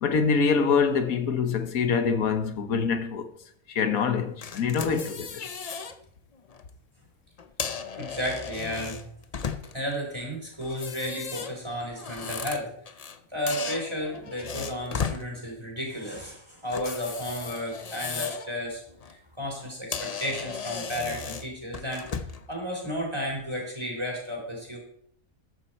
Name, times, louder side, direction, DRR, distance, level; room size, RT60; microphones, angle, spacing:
voice 1, 0.0-3.3 3.7-5.5, left 5 dB, 75° left, 1.5 m, -25 dB
sound 1, 4.4-6.0 6.4-6.6 7.4-9.9 10.6-13.2 13.5-15.2 16.7-18.5 18.9-19.1 19.6-19.7 19.9-22.5, left 6 dB, 45° left, 0.5 m, -36 dB
voice 2, 7.9-9.1 9.7-12.7 13.3-18.8 19.1-24.8, equal, 20° right, 4.0 m, -33 dB
13.5 x 9.7 x 4.4 m
omnidirectional pair, 1.5 m